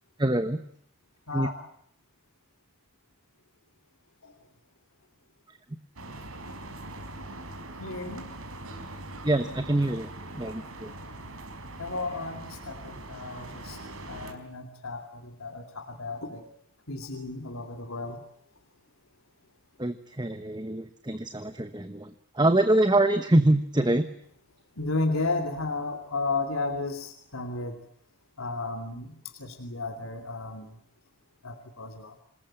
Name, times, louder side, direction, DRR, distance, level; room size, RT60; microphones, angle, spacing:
voice 1, 0.2-0.6 1.3-1.5 9.2-10.1 10.3-10.9 19.8-22.1 22.4-24.0, right 1 dB, 20° right, 9 dB, 1.1 m, -24 dB
sound 1, 6.0-14.3, right 2 dB, 75° right, 4.6 m, -42 dB
voice 2, 7.8-8.3 11.8-13.8 14.1-16.4 16.9-18.2 24.8-27.8 28.4-29.1 29.4-30.7 31.4-32.1, left 3 dB, 70° left, 5 dB, 3.0 m, -33 dB
27.5 x 20.5 x 8.9 m, 0.69 s
head